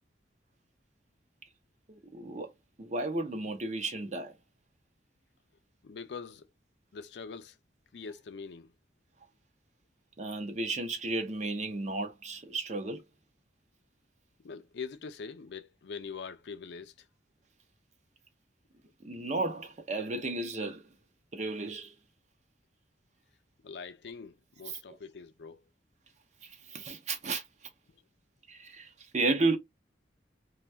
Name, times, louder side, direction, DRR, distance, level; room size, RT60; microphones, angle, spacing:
voice 1, 1.9-2.5 2.8-4.3 10.2-13.0 19.0-20.9 21.3-21.9 26.4-27.4 28.5-29.6, right 2 dB, 40° right, 0.6 m, -33 dB
voice 2, 5.8-6.4 6.9-7.6 7.9-8.7 14.4-17.1 23.6-25.6, left 5 dB, 70° left, 0.4 m, -43 dB
2.6 x 2.2 x 3.2 m
head